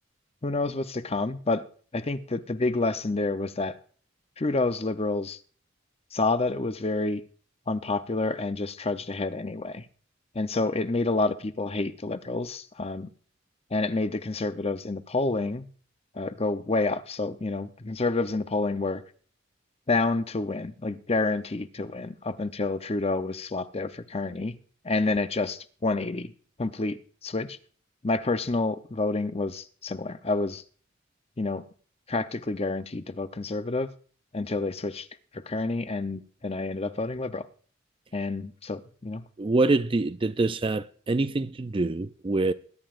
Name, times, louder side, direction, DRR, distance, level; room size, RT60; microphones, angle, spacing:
voice 1, 0.4-1.7 1.9-3.8 4.4-5.4 6.1-7.2 7.7-9.9 10.3-13.1 13.7-15.6 16.1-19.0 19.9-24.5 24.8-26.3 26.6-27.6 28.0-30.6 31.4-31.6 32.1-33.9 34.3-35.1 35.3-37.5 38.1-39.2, left 3 dB, 30° left, 0.7 m, -28 dB
voice 2, 39.4-42.5, right 2 dB, 25° right, 0.4 m, -25 dB
21.5 x 11.0 x 2.5 m
head